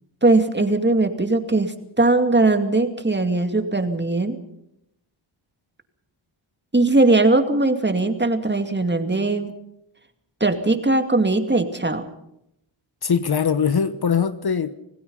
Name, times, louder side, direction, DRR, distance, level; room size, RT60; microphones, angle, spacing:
voice 1, 0.2-4.4 6.7-9.5 10.4-12.1, right 2 dB, 20° right, 7 dB, 2.4 m, -20 dB
voice 2, 13.0-14.7, left 6 dB, 50° left, 12 dB, 1.2 m, -21 dB
26.5 x 18.0 x 5.5 m, 0.80 s
cardioid pair, 75°, 49 cm